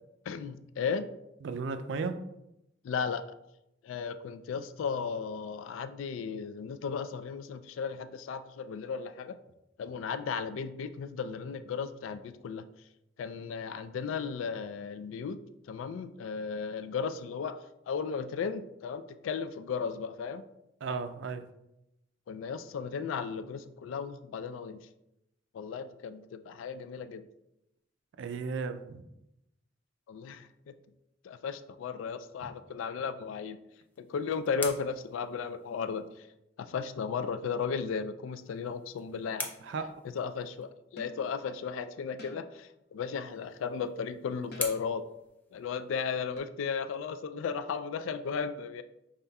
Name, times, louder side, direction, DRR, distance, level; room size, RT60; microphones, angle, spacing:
voice 1, 0.3-1.1 2.8-3.2 3.8-9.4 9.8-12.6 13.2-15.4 15.7-20.4 22.3-24.8 25.5-27.3 30.1-30.7 31.2-33.6 34.0-36.1 36.6-39.5 40.1-45.0 45.5-48.8, left 6 dB, 85° left, 11 dB, 0.3 m, -35 dB
voice 2, 1.4-2.2 20.8-21.5 28.2-29.0 32.4-32.5 39.6-39.9, right 4 dB, 65° right, 9 dB, 0.4 m, -35 dB
sound 1, 33.7-36.2 38.3-40.7 43.0-46.1, left 2 dB, 10° left, 0.5 m, -45 dB
sound 2, 39.6-39.9 41.0-41.3 42.2-42.7 44.5-45.0 46.4-46.5, left 2 dB, 55° left, 0.9 m, -51 dB
5.4 x 3.6 x 2.3 m, 0.86 s
head